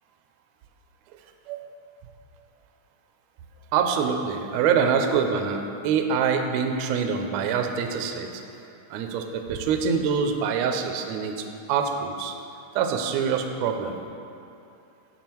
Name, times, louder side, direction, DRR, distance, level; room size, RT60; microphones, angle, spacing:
voice 1, 3.7-8.3 8.9-12.3 12.7-13.9, right 6 dB, 80° right, 5 dB, 1.6 m, -25 dB
7.2 x 6.0 x 4.4 m, 2.7 s
omnidirectional pair, 3.6 m